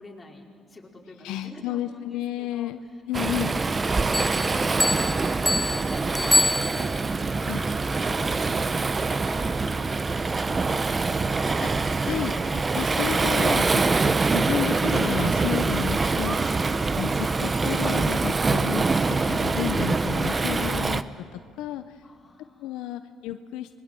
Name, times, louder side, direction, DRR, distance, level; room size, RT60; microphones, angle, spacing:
voice 1, 0.0-3.0 16.3-17.0 22.0-22.8, left 1 dB, 20° left, -2 dB, 5.0 m, -48 dB
voice 2, 1.2-2.8 3.1-3.5 7.5-7.6 11.6-16.4 17.0-21.0 21.3-22.0 22.6-23.7, left 13 dB, 85° left, 9 dB, 0.8 m, -32 dB
Waves surf, 3.1-21.0, right 3 dB, 30° right, 0.9 m, -24 dB
Bell, 4.1-7.2, left 1 dB, 5° left, 1.2 m, -26 dB
26.5 x 22.0 x 7.7 m, 2.2 s
supercardioid pair, 80°, 0 cm